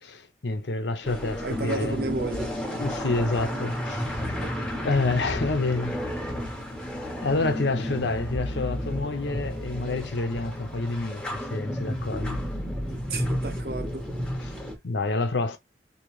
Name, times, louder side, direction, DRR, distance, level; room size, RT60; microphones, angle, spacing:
voice 1, 0.0-2.0 2.7-4.2 4.8-6.0 7.2-12.4 14.4-14.5 14.8-15.6, left 3 dB, 85° left, 0.7 m, -28 dB
sound 1, 1.0-14.8, equal, 5° left, 0.7 m, -32 dB
voice 2, 1.4-2.5 4.4-4.9 13.1-14.1, right 3 dB, 60° right, 0.7 m, -33 dB
3.8 x 2.8 x 3.1 m
head